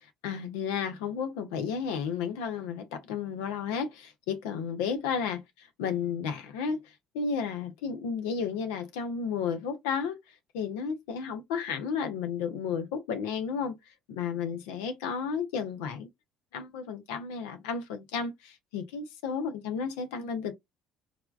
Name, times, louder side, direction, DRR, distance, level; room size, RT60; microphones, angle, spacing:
voice 1, 0.2-6.8 7.1-10.2 10.5-13.8 14.1-16.1 16.5-20.5, left 6 dB, 80° left, 0.5 m, -32 dB
3.4 x 2.2 x 2.3 m
hypercardioid pair, 60°, 0 cm